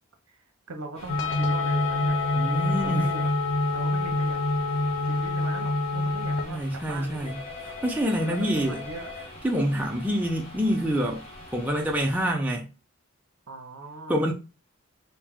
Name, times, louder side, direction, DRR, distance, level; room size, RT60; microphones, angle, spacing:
voice 1, 0.7-2.2 2.8-3.2 3.7-4.4 5.0-7.3 8.2-9.1 13.5-14.3, right 2 dB, 70° right, 0.8 m, -40 dB
sound 1, 0.9-12.3, left 3 dB, 25° left, 0.9 m, -42 dB
sound 2, 1.1-6.4, left 2 dB, 55° left, 0.5 m, -26 dB
voice 2, 2.4-3.0 6.5-7.4 7.8-8.8 9.4-11.2 11.5-12.7 14.1-14.3, equal, 5° right, 0.4 m, -26 dB
4.5 x 2.1 x 3.5 m
head